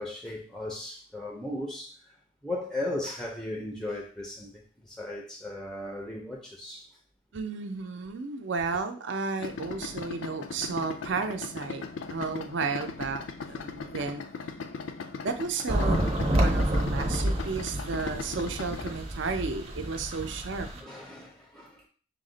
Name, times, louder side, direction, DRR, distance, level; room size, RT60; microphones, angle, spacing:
voice 1, 0.0-2.2 2.4-6.9 20.7-21.9, left 1 dB, 5° left, 0.4 m, -37 dB
voice 2, 7.3-11.8 12.1-14.2 15.2-20.7, right 4 dB, 65° right, 0.5 m, -33 dB
Idling, 9.4-19.0, left 5 dB, 75° left, 0.4 m, -39 dB
sound 1, 15.7-20.8, right 1 dB, 30° right, 0.7 m, -29 dB
5.8 x 2.1 x 3.8 m
head